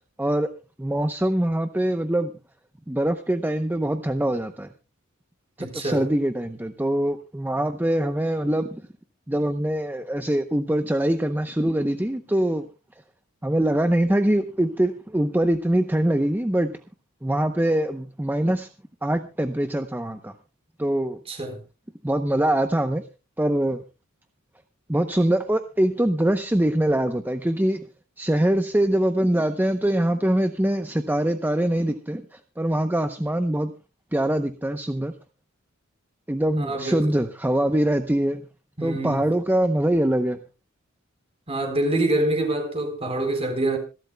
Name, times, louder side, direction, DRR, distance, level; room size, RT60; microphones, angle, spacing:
voice 1, 0.2-0.5 0.8-2.3 2.9-4.7 5.6-8.8 9.3-12.7 13.4-16.8 17.2-18.7 19.0-20.4 20.8-21.2 22.0-23.0 23.4-23.8 24.9-27.8 28.2-32.2 32.6-33.7 34.1-35.1 36.3-38.4 38.8-40.4, right 1 dB, 10° right, 0.7 m, -23 dB
voice 2, 5.6-6.1 21.3-21.6 36.6-37.1 38.8-39.2 41.5-43.8, right 1 dB, 30° right, 4.1 m, -26 dB
26.5 x 12.0 x 2.2 m
head